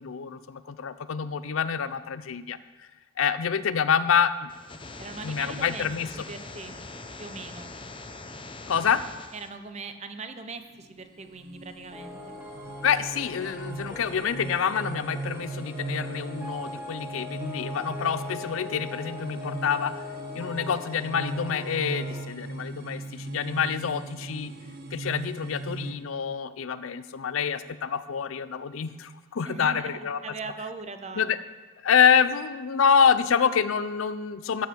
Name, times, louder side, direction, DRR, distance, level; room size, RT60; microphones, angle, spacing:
voice 1, 0.0-2.6 3.2-4.5 5.2-6.1 8.7-9.0 12.8-20.0 20.3-24.5 24.9-30.2 31.2-31.4 31.8-34.7, left 7 dB, 75° left, 14 dB, 0.5 m, -26 dB
sound 1, 4.5-9.5, left 3 dB, 25° left, 0.6 m, -42 dB
voice 2, 5.0-5.9 6.1-6.7 7.2-7.7 9.3-12.3 29.5-31.3, right 4 dB, 30° right, 8 dB, 0.6 m, -40 dB
sound 2, 10.7-25.9, right 2 dB, 50° right, 1.1 m, -39 dB
sound 3, 11.9-22.2, left 2 dB, 5° right, 1.5 m, -41 dB
14.0 x 7.2 x 4.5 m, 1.3 s
head